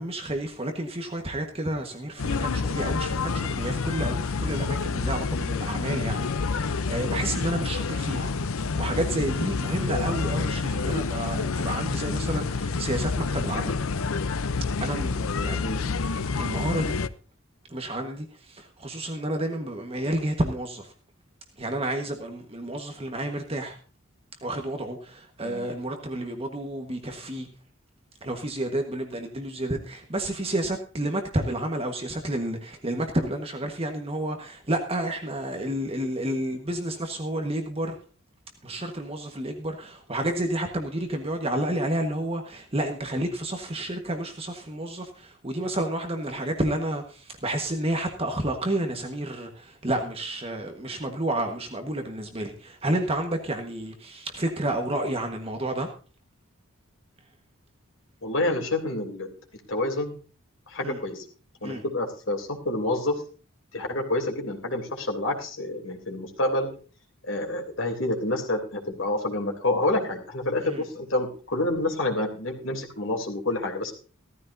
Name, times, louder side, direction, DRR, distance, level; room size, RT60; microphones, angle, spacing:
voice 1, 0.0-13.8 14.8-15.7 16.4-17.0 17.7-20.9 21.6-23.8 24.4-27.5 28.2-38.0 38.6-55.9 60.8-61.0 61.6-61.8 70.6-70.8, right 1 dB, 25° right, 1.4 m, -30 dB
sound 1, 2.2-17.1, left 4 dB, 80° left, 0.7 m, -28 dB
voice 2, 58.2-59.3 59.7-60.2 60.7-61.2 61.6-63.2 63.7-66.7 67.2-73.9, left 2 dB, 60° left, 3.2 m, -28 dB
15.5 x 14.0 x 2.7 m
head